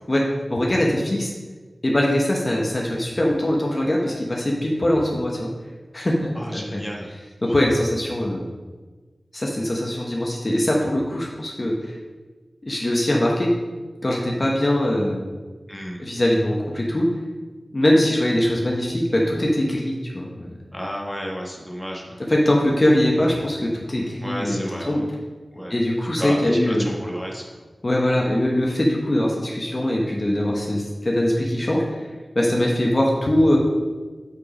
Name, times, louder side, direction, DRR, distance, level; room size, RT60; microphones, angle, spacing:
voice 1, 0.5-1.3 1.8-5.5 5.9-6.8 7.4-8.5 9.3-12.0 12.6-13.5 14.0-15.2 16.0-17.1 17.7-20.5 22.3-25.1 25.7-26.9 27.8-32.0 32.3-33.6, left 1 dB, 40° left, -2 dB, 1.1 m, -22 dB
voice 2, 6.3-7.1 7.5-7.8 15.7-16.0 20.7-22.2 24.2-25.0 25.5-25.7 26.2-27.4, equal, 5° left, -2 dB, 1.5 m, -31 dB
8.2 x 4.6 x 5.0 m, 1.3 s
wide cardioid pair, 65°, 0 cm